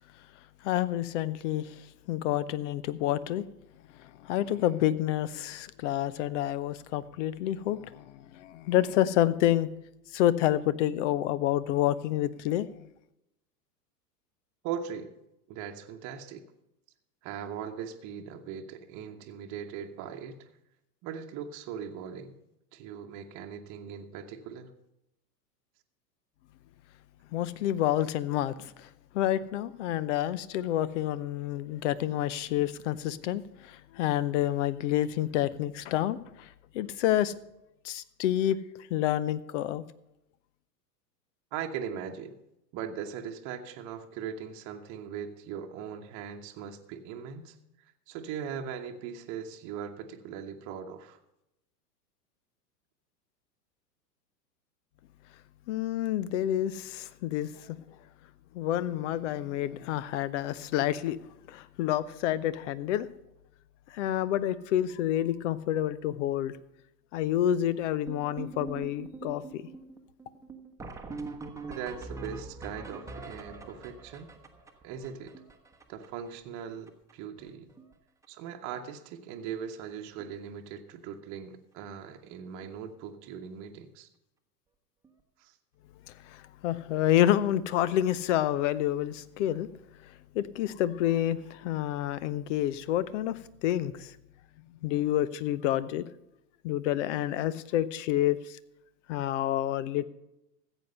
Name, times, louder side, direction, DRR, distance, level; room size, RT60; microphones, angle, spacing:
voice 1, 0.6-1.7 2.1-3.4 4.2-9.7 10.1-12.7 27.3-28.9 29.1-36.5 36.7-37.3 37.8-38.6 38.9-39.8 55.7-57.8 58.5-61.2 61.5-63.1 63.9-66.5 67.1-69.7 86.3-89.7 90.3-94.1 94.8-96.0 96.6-98.6 99.1-100.0, left 12 dB, 45° left, 18 dB, 0.7 m, -28 dB
voice 2, 14.6-15.1 15.5-16.4 17.2-20.4 21.0-22.4 22.7-24.7 41.5-42.4 42.7-47.6 48.1-51.2 71.7-74.3 74.8-75.4 75.9-77.7 78.3-84.1 85.4-85.5, right 8 dB, 35° right, 4 dB, 1.1 m, -39 dB
sound 1, 68.1-76.3 76.6-76.7 76.9-77.1 77.4-77.9 78.2-78.5 79.3-79.4 79.8-79.9 80.2-80.4 82.6-82.7 85.0-85.1, right 3 dB, 5° right, 1.1 m, -43 dB
14.5 x 8.1 x 5.4 m, 0.87 s
figure-of-eight pair, 95°, 49 cm